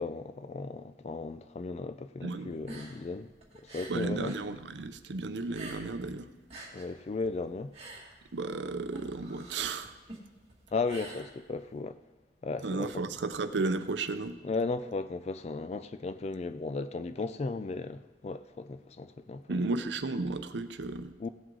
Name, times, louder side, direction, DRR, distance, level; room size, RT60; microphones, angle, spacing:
voice 1, 0.0-3.3 3.7-4.4 6.7-7.7 10.7-12.0 12.4-12.9 14.4-19.6 21.2-21.3, left 3 dB, 35° left, 0.3 m, -35 dB
voice 2, 2.2-2.5 3.9-6.3 8.3-9.9 12.6-14.4 19.5-21.1, right 3 dB, 75° right, 0.7 m, -33 dB
sound 1, 2.5-4.5 4.8-6.1 6.4-11.8, right 2 dB, 35° right, 2.0 m, -47 dB
17.0 x 7.8 x 3.8 m
head